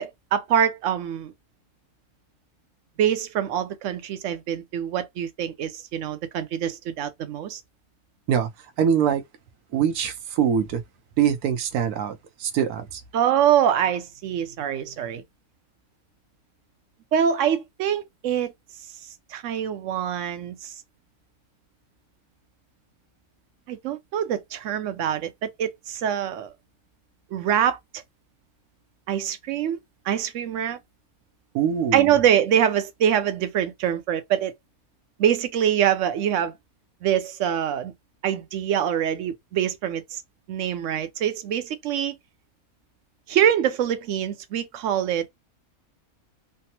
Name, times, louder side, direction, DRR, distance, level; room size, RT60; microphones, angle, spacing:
voice 1, 0.0-1.3 3.0-7.6 13.1-15.2 17.1-18.5 19.3-20.8 23.7-26.5 27.3-28.0 29.1-29.8 30.1-30.8 31.9-34.5 35.2-36.5 37.0-37.9 38.2-40.2 40.5-42.2 43.3-45.3, right 9 dB, 65° right, 0.8 m, -24 dB
voice 2, 8.8-9.2 9.7-10.8 11.2-13.0 31.5-32.1, right 8 dB, 90° right, 1.1 m, -23 dB
3.3 x 2.0 x 2.8 m
omnidirectional pair, 1.5 m